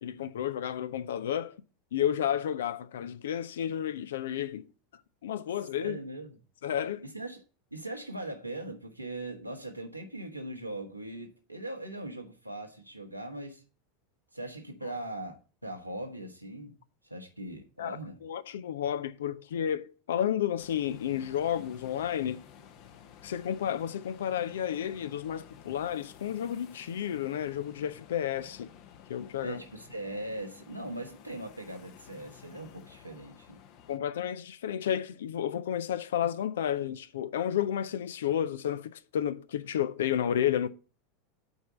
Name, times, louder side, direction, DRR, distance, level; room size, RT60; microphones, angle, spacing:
voice 1, 0.0-1.6 1.9-4.7 5.2-6.0 6.6-7.0 17.8-22.4 23.2-28.7 29.1-29.6 33.9-40.7, left 10 dB, 65° left, 0.6 m, -31 dB
voice 2, 5.8-6.3 7.0-7.4 7.7-13.6 14.3-15.4 15.6-16.8 17.0-18.2 29.4-33.6, right 1 dB, 90° right, 1.4 m, -40 dB
sound 1, 20.6-34.0, left 9 dB, 45° left, 1.0 m, -53 dB
8.2 x 4.6 x 6.8 m
figure-of-eight pair, 85°, 0 cm